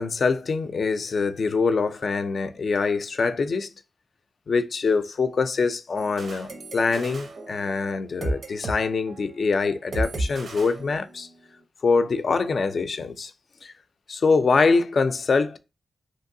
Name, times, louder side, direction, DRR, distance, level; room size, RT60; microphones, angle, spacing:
voice 1, 0.0-3.7 4.5-11.3 11.8-13.3 13.6-13.7 14.1-15.6, left 4 dB, 65° left, 0.3 m, -24 dB
sound 1, 6.0-8.8 9.1-9.3 9.9-11.4, right 1 dB, 75° right, 0.6 m, -33 dB
2.9 x 2.6 x 2.6 m
wide cardioid pair, 100°, 0 cm